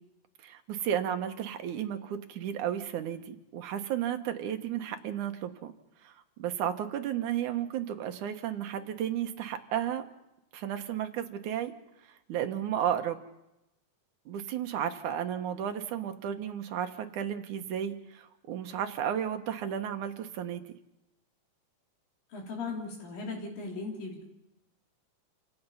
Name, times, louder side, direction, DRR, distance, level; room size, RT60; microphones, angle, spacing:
voice 1, 0.4-5.7 6.0-6.1 6.4-10.0 10.5-11.7 12.3-13.2 14.3-20.6, right 9 dB, 70° right, 7 dB, 2.6 m, -33 dB
voice 2, 22.3-24.3, left 3 dB, 90° left, -1 dB, 5.1 m, -38 dB
28.0 x 17.5 x 5.7 m, 0.90 s
omnidirectional pair, 3.8 m